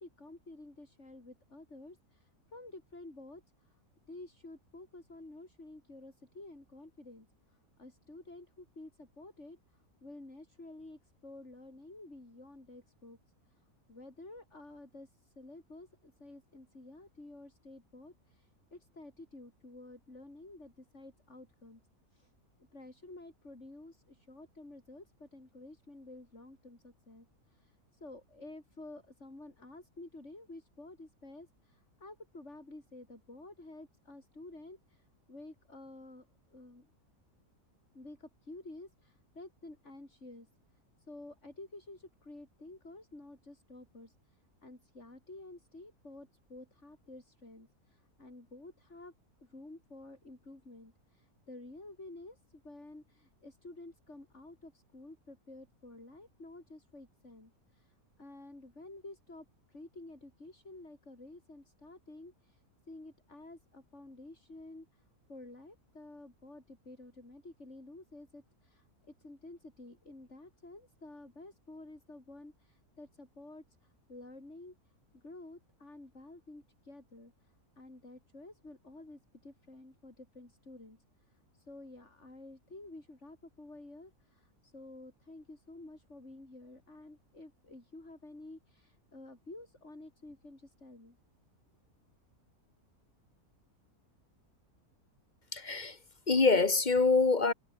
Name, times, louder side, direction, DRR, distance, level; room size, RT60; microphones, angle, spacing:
voice 1, 0.0-3.8 4.1-13.2 13.5-21.8 22.1-22.3 22.7-36.9 37.9-40.5 41.0-49.1 49.4-91.2, left 2 dB, 50° left, 6.3 m, -51 dB
voice 2, 95.5-96.0 96.3-97.5, left 4 dB, 30° left, 2.0 m, -25 dB
omnidirectional pair, 1.6 m